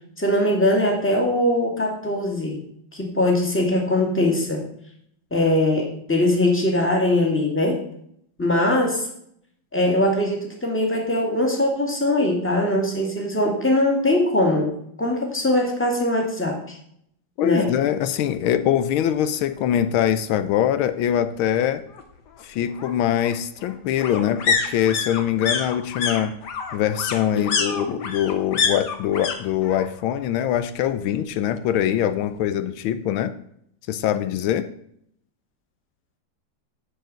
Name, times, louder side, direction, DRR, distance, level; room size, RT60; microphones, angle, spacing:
voice 1, 0.2-2.6 2.9-4.6 5.3-7.8 8.4-9.0 9.7-14.7 15.0-16.8 17.4-17.7 27.3-28.0, left 1 dB, 5° left, 0 dB, 1.8 m, -21 dB
voice 2, 17.4-21.8 22.4-26.3 26.7-33.3 33.9-34.7, left 10 dB, 85° left, 12 dB, 1.5 m, -23 dB
sound 1, 18.5-18.6 18.9-19.0 19.3-20.3 21.6-29.4 29.6-30.2 30.5-31.5 31.8-31.9, left 5 dB, 60° left, 1.6 m, -28 dB
9.2 x 4.7 x 7.5 m, 0.69 s
omnidirectional pair, 2.3 m